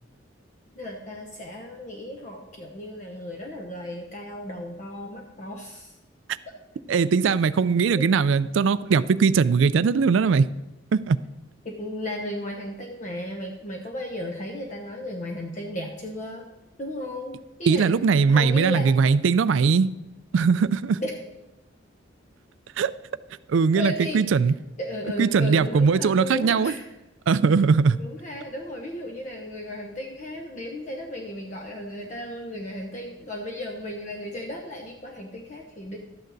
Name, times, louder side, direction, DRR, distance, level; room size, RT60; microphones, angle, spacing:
voice 1, 0.7-5.9 6.4-6.5 6.9-7.0 7.9-8.1 11.6-16.5 16.8-18.9 21.0-21.2 23.7-24.2 24.8-26.9 27.9-36.0, left 1 dB, 40° left, 2 dB, 0.8 m, -35 dB
voice 2, 6.9-10.5 10.9-11.2 17.7-19.9 20.3-21.0 22.8-22.9 23.5-24.5 25.2-26.7 27.3-28.0, right 5 dB, 75° right, 16 dB, 0.4 m, -20 dB
12.5 x 8.8 x 4.0 m, 1.0 s
head